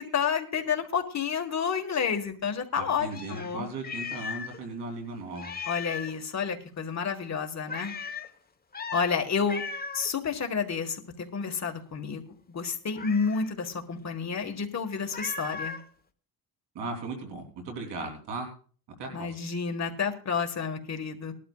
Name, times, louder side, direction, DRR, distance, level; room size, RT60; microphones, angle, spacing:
voice 1, 0.0-3.7 5.7-7.9 8.9-9.6 9.9-12.2 12.5-15.8 19.1-21.3, left 6 dB, 40° left, 5 dB, 1.7 m, -30 dB
voice 2, 2.7-5.6 16.8-18.5 19.0-19.4, right 3 dB, 90° right, 2 dB, 3.5 m, -37 dB
Meow, 3.1-4.6 4.9-5.0 5.4-6.2 7.7-8.3 8.7-9.1 9.5-10.1 12.9-13.5 15.1-15.9, left 5 dB, 20° left, 1.1 m, -37 dB
20.0 x 11.5 x 2.4 m, 0.42 s
cardioid pair, 100°, 41 cm